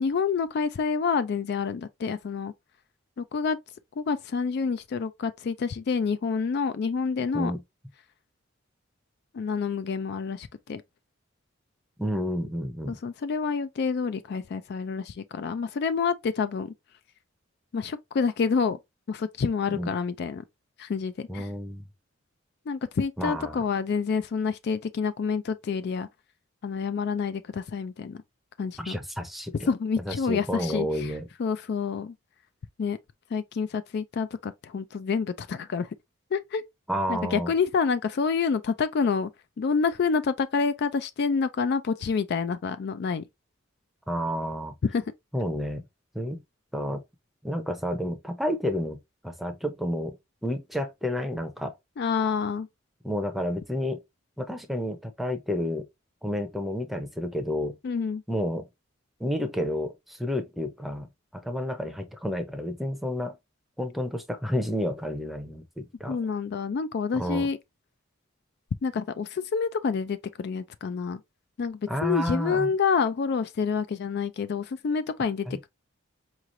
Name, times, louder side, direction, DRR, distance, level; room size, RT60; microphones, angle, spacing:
voice 1, 0.0-2.5 3.2-3.6 4.0-7.5 9.3-10.8 12.9-16.7 17.7-18.8 19.1-20.4 20.8-21.5 22.7-26.1 26.6-28.2 28.6-29.0 29.7-31.1 31.4-32.1 32.8-33.0 33.3-35.9 36.3-36.6 37.1-39.3 39.6-43.2 44.8-45.0 52.0-52.7 57.8-58.2 66.1-67.6 68.8-71.2 71.6-75.7, left 5 dB, 55° left, 0.3 m, -28 dB
voice 2, 12.0-13.0 19.7-19.9 21.3-21.9 23.2-23.6 28.8-29.7 30.1-31.3 36.9-37.5 44.1-44.7 45.3-45.8 46.1-46.4 46.7-47.0 47.4-50.2 50.4-51.7 53.0-54.0 54.4-55.9 56.2-57.8 58.3-58.7 59.2-63.4 63.8-66.2 67.1-67.5 71.9-72.7 75.5-75.7, equal, ahead, 0.6 m, -30 dB
4.8 x 3.1 x 2.5 m
head